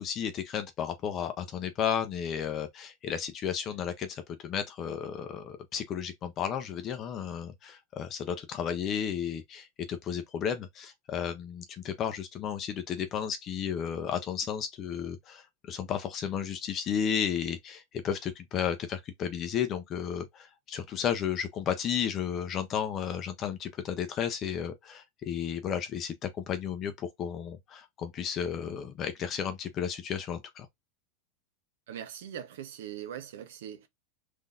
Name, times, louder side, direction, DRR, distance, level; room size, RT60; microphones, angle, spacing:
voice 1, 0.0-30.7, left 8 dB, 30° left, 0.5 m, -33 dB
voice 2, 31.9-33.9, right 10 dB, 75° right, 0.7 m, -41 dB
3.8 x 2.6 x 2.4 m
supercardioid pair, 155°, 0 cm